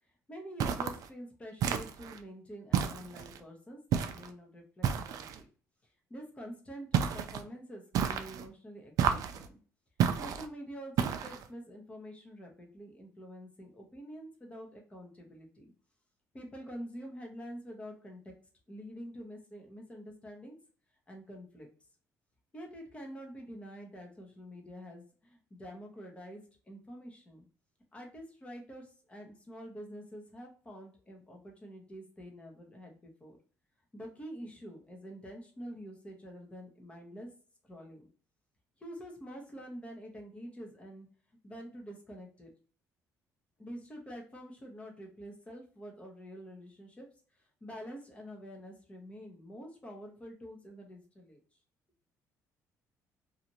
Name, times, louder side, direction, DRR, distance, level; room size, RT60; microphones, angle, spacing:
voice 1, 0.3-5.5 5.8-9.6 10.2-15.6 16.3-18.3 18.7-20.5 21.1-21.7 22.5-27.4 27.9-33.4 33.9-37.3 37.6-38.1 38.8-41.1 41.4-42.5 43.6-47.1 47.3-51.4, equal, 20° left, 1 dB, 0.8 m, -47 dB
sound 1, 0.6-1.1 1.6-2.2 2.7-3.4 3.9-4.3 4.8-5.4 6.9-7.4 7.9-8.5 9.0-9.5 10.0-10.5 11.0-11.5, right 8 dB, 60° right, 0.3 m, -31 dB
2.6 x 2.4 x 2.9 m, 0.42 s
cardioid pair, 115°, 7 cm